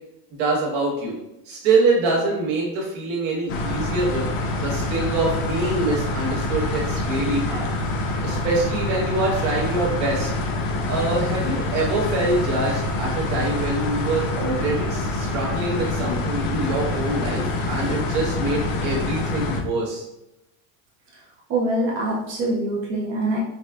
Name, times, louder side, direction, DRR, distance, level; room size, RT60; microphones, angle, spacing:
voice 1, 0.4-1.2 1.4-4.3 4.6-7.7 8.0-10.3 10.9-20.0, right 2 dB, 55° right, -3 dB, 1.3 m, -25 dB
sound 1, 3.5-19.6, left 2 dB, 70° left, 0.7 m, -26 dB
voice 2, 21.5-23.4, right 1 dB, 30° right, -2 dB, 0.4 m, -24 dB
4.8 x 2.1 x 2.3 m, 0.88 s
cardioid pair, 170°, 45 cm